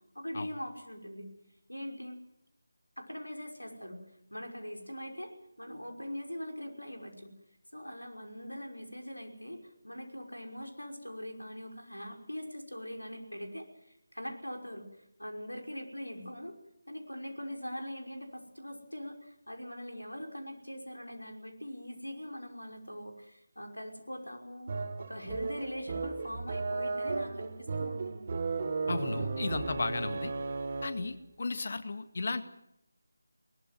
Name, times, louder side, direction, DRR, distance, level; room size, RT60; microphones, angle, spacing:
voice 1, 0.1-1.3 1.7-2.2 3.0-4.0 4.3-7.3 7.7-16.6 16.9-28.3, equal, 90° left, 3 dB, 5.8 m, -42 dB
sound 1, 24.7-31.1, right 4 dB, 35° right, 1.8 m, -35 dB
voice 2, 28.9-30.3 30.8-32.4, left 3 dB, 45° left, 10 dB, 1.9 m, -34 dB
22.0 x 20.5 x 7.6 m, 0.80 s
figure-of-eight pair, 160°, 0 cm